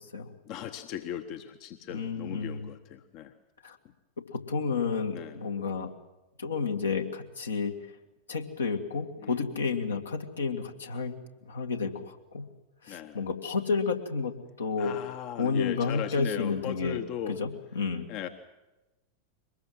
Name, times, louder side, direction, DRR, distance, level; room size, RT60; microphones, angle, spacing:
voice 1, 0.4-3.3 5.1-5.4 9.2-9.4 12.9-13.2 14.8-17.4 18.1-18.3, left 10 dB, 40° left, 8 dB, 1.1 m, -38 dB
voice 2, 1.9-2.7 3.6-3.8 4.3-5.9 6.4-7.7 8.3-11.1 11.4-12.4 12.8-15.0 15.4-17.0 17.3-17.5 17.8-18.1, left 5 dB, 70° left, 3 dB, 2.0 m, -31 dB
23.0 x 20.5 x 7.6 m, 1.0 s
figure-of-eight pair, 90°, 0 cm